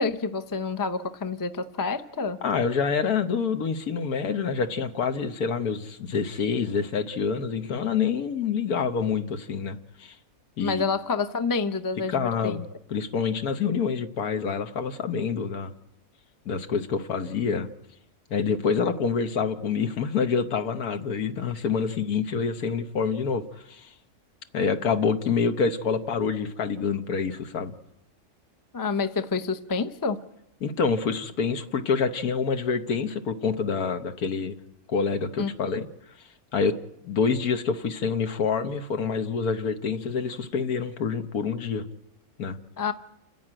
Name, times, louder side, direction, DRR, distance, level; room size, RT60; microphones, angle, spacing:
voice 1, 0.0-2.4 10.6-12.6 28.7-30.2 35.4-35.5 42.8-42.9, left 4 dB, 20° left, 10 dB, 0.5 m, -28 dB
voice 2, 2.4-10.2 10.6-10.9 12.1-12.6 12.9-15.7 16.4-17.7 18.3-23.9 24.5-27.7 30.6-34.6 34.9-35.9 36.5-36.7 37.0-41.8 42.4-42.6, left 5 dB, 75° left, 8 dB, 1.6 m, -27 dB
29.0 x 10.0 x 8.9 m, 0.86 s
omnidirectional pair, 1.6 m